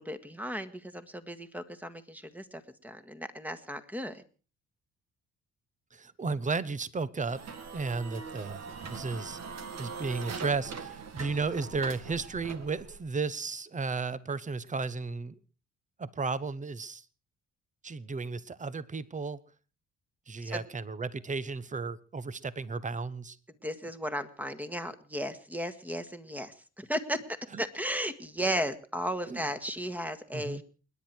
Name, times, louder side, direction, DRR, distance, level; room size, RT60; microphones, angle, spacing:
voice 1, 0.0-4.2 20.4-20.7 23.6-30.6, equal, 5° right, 10 dB, 1.8 m, -35 dB
voice 2, 5.9-7.4 7.7-9.4 9.7-15.3 16.0-17.0 17.8-19.4 20.3-23.4 27.5-27.6 29.3-29.4 30.3-30.6, right 4 dB, 25° right, 18 dB, 1.1 m, -34 dB
sound 1, 7.2-13.0, right 5 dB, 60° right, 2.1 m, -42 dB
28.5 x 10.5 x 4.6 m, 0.37 s
cardioid pair, 90°, 30 cm